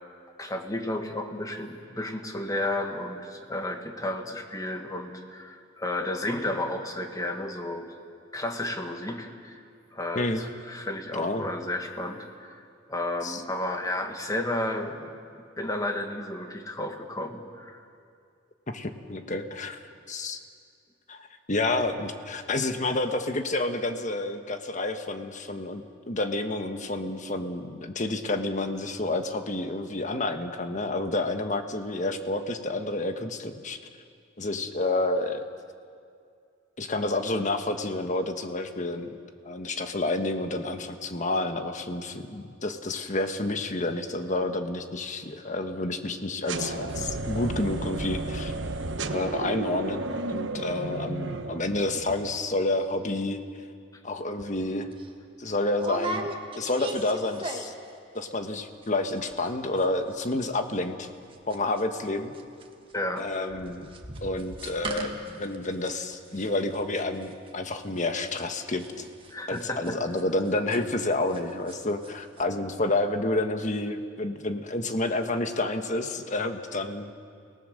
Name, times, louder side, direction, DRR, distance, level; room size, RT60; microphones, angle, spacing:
voice 1, 0.4-7.9 8.3-9.6 9.9-12.6 12.9-15.2 15.6-17.8 62.9-63.3 69.3-70.0, left 1 dB, 20° left, 4 dB, 1.8 m, -32 dB
voice 2, 11.1-11.5 13.2-13.4 18.7-20.4 21.1-25.8 26.1-33.8 34.4-35.4 36.8-39.2 39.4-48.5 49.1-53.4 54.0-54.9 55.4-56.3 56.6-57.7 58.1-61.1 61.5-62.3 63.2-63.9 64.2-69.1 69.5-77.1, left 2 dB, 40° left, 7 dB, 1.4 m, -29 dB
sound 1, 46.5-52.4, right 2 dB, 70° right, 1.3 m, -33 dB
sound 2, 54.4-54.5 54.9-55.1 55.7-57.9 58.2-58.6 58.8-58.9 59.1-59.5 59.8-62.1 62.3-71.4 71.7-72.1 72.4-72.5, right 2 dB, 30° right, 1.7 m, -38 dB
29.5 x 19.0 x 6.6 m, 2.3 s
head